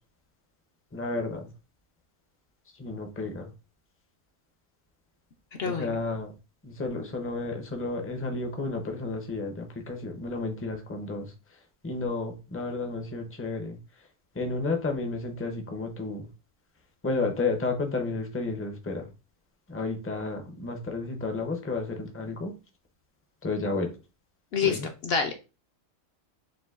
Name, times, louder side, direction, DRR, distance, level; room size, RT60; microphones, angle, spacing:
voice 1, 0.9-1.4 2.8-3.5 5.6-6.3 6.6-11.3 11.8-13.8 14.4-16.3 17.0-19.1 19.7-22.5 23.4-23.9 24.6-24.9, left 3 dB, 20° left, 4 dB, 0.3 m, -32 dB
voice 2, 5.6-6.0 24.5-25.3, left 6 dB, 65° left, 5 dB, 0.7 m, -27 dB
6.6 x 2.6 x 2.4 m, 0.31 s
omnidirectional pair, 1.4 m